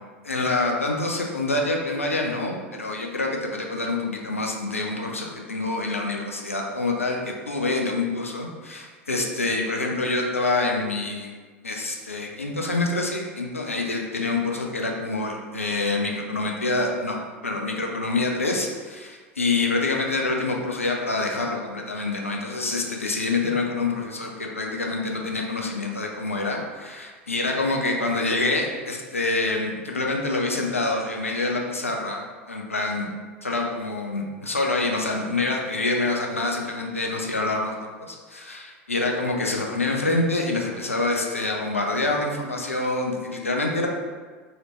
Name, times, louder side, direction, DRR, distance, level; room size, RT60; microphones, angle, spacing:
voice 1, 0.2-7.2 7.5-11.3 11.6-17.2 17.4-33.1 33.4-43.9, left 2 dB, 80° left, 1 dB, 0.5 m, -26 dB
3.9 x 3.1 x 3.1 m, 1.5 s
figure-of-eight pair, 80°, 7 cm